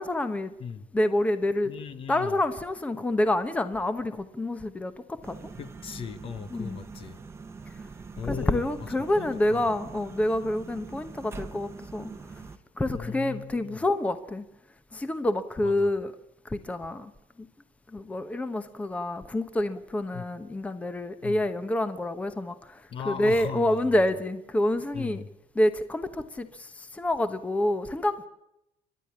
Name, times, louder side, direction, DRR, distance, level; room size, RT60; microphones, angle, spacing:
voice 1, 0.0-0.5 0.9-1.7 2.1-5.4 6.5-6.8 8.3-12.1 12.8-14.4 14.9-16.1 16.4-17.1 17.9-25.2 25.6-28.3, left 1 dB, 10° left, 1.0 m, -27 dB
voice 2, 1.6-2.4 5.6-7.2 8.2-8.9 9.2-9.7 12.9-13.8 15.6-15.9 20.1-20.3 21.2-21.4 22.9-24.0 24.9-25.3, left 6 dB, 35° left, 1.1 m, -38 dB
sound 1, 5.2-12.6, right 4 dB, 15° right, 1.1 m, -43 dB
30.0 x 12.0 x 8.7 m
cardioid pair, 160°, 15 cm